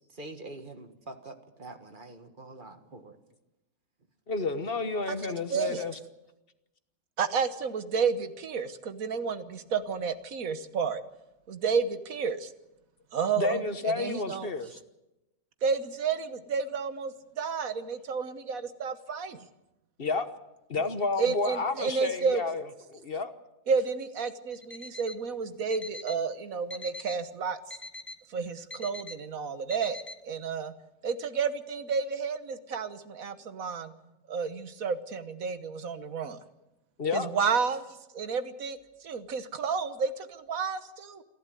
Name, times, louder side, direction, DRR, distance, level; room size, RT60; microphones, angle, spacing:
voice 1, 0.1-3.2 34.0-34.2, right 2 dB, 40° right, 7 dB, 1.8 m, -45 dB
voice 2, 4.3-6.0 13.4-14.8 20.0-20.3 20.7-23.3 37.0-37.3, left 3 dB, 45° left, 10 dB, 1.3 m, -31 dB
voice 3, 5.5-5.8 7.2-11.0 11.5-12.5 13.1-13.6 14.0-14.5 15.6-19.5 21.2-22.4 23.7-27.6 28.3-30.0 30.2-30.7 31.0-33.9 34.3-36.4 37.1-37.8 38.1-41.2, right 5 dB, 90° right, 11 dB, 1.6 m, -31 dB
Alarm, 24.5-25.2 25.7-26.2 26.7-27.2 27.7-28.2 28.7-29.2 29.7-30.2, left 2 dB, 10° left, 0.7 m, -43 dB
28.5 x 11.5 x 9.1 m, 0.97 s
omnidirectional pair, 1.4 m